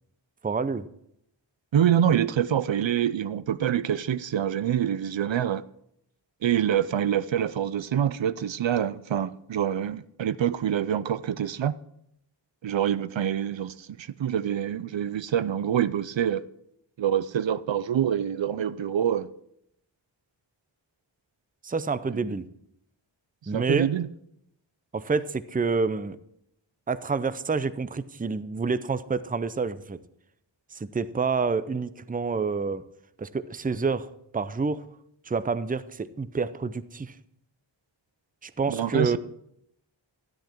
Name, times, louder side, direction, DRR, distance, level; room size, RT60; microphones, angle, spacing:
voice 1, 0.4-0.9 21.6-22.4 23.5-23.9 24.9-26.2 26.9-30.0 30.7-32.8 33.2-34.1 34.3-34.8 35.3-37.1 38.4-39.2, right 4 dB, 20° right, 0.5 m, -28 dB
voice 2, 1.7-5.6 6.4-11.7 12.6-16.4 17.0-19.3 22.1-22.2 23.5-24.1 38.7-39.2, right 9 dB, 75° right, 0.5 m, -26 dB
13.0 x 10.5 x 4.5 m
wide cardioid pair, 60°, 46 cm